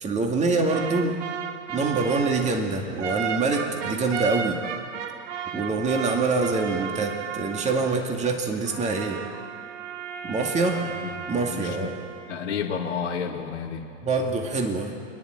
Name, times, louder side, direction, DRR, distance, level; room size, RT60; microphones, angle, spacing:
voice 1, 0.0-1.2 1.7-4.6 5.5-9.2 10.2-10.8 11.3-11.9 14.0-15.0, right 3 dB, 20° right, 3 dB, 2.2 m, -25 dB
sound 1, 0.7-8.2 8.7-12.7, right 8 dB, 70° right, 1.5 m, -35 dB
voice 2, 10.6-11.1 11.5-12.0 12.3-13.9, left 6 dB, 90° left, -6 dB, 2.7 m, -31 dB
28.5 x 10.5 x 9.1 m, 2.4 s
hypercardioid pair, 125°, 36 cm